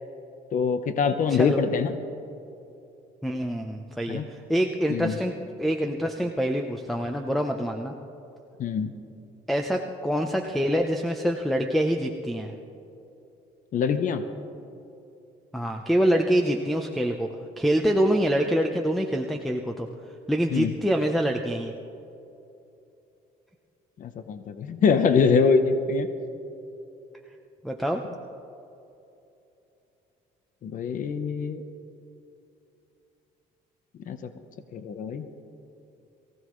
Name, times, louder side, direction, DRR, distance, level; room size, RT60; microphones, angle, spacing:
voice 1, 0.5-2.0 4.1-4.3 4.9-5.2 8.6-8.9 13.7-14.2 20.5-20.7 24.0-26.1 30.6-31.6 34.1-34.2 34.7-35.2, left 5 dB, 50° left, 8 dB, 0.9 m, -24 dB
voice 2, 1.3-1.6 3.2-8.0 9.5-12.5 15.5-19.9 20.3-21.7 27.6-28.0, equal, ahead, 4 dB, 0.8 m, -25 dB
23.0 x 15.5 x 3.2 m, 2.8 s
cardioid pair, 110°, 17 cm